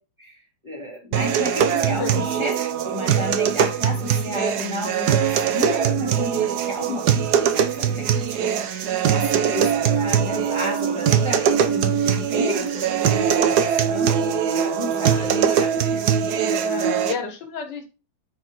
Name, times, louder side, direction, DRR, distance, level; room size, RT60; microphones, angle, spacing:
voice 1, 0.2-14.2 14.5-16.3, left 1 dB, 15° right, -1 dB, 3.3 m, -32 dB
sound 1, 1.1-17.1, right 8 dB, 60° right, 1.3 m, -21 dB
voice 2, 14.9-15.3 16.6-17.9, left 5 dB, 60° left, 4 dB, 2.2 m, -33 dB
9.4 x 4.9 x 4.3 m, 0.32 s
omnidirectional pair, 2.1 m